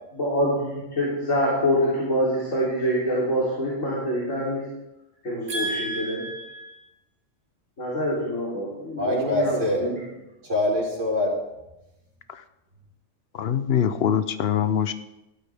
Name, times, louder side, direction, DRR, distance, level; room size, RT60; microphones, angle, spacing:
voice 1, 0.1-4.7 5.2-6.2 7.8-9.9, equal, 85° left, -8 dB, 3.8 m, -25 dB
voice 2, 5.5-6.8 9.0-9.8 10.4-11.3, left 1 dB, 75° right, -3 dB, 4.1 m, -26 dB
voice 3, 13.3-14.9, left 8 dB, 60° left, 12 dB, 0.9 m, -23 dB
16.0 x 12.5 x 3.5 m, 0.94 s
omnidirectional pair, 1.3 m